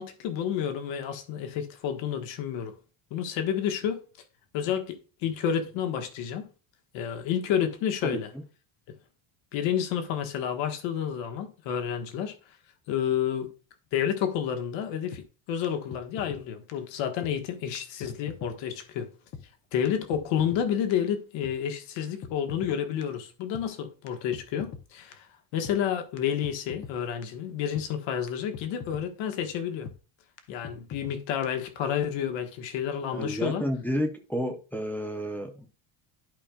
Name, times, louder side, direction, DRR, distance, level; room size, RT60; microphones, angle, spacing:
voice 1, 0.0-2.7 3.1-4.0 4.5-6.5 6.9-8.3 8.9-9.0 9.5-12.4 12.9-13.5 13.9-19.1 19.7-25.3 25.5-29.9 30.5-33.6, left 9 dB, 65° left, 1.5 m, -30 dB
sound 1, 15.1-15.2 15.6-15.7 15.9-16.4 16.7-16.8 17.2-17.3 17.7-17.8 18.0-18.5 18.8-18.9 19.3-19.4 19.8-19.9 20.1-20.6 20.9-21.0 21.4-21.5 22.0-22.7 23.0-23.1 23.5-23.7 24.1-24.2 24.3-24.8 25.1-25.2 25.6-25.8 26.2-26.3 26.4-26.9 27.2-27.3 27.7-27.9 28.3-28.4 28.5-29.0 29.3-29.4 29.9-30.0 30.4-30.5 30.6-31.2 31.4-31.5, left 6 dB, 30° left, 0.8 m, -41 dB
voice 2, 33.1-35.7, equal, 5° left, 0.5 m, -31 dB
11.5 x 5.0 x 2.3 m
cardioid pair, 175°, 49 cm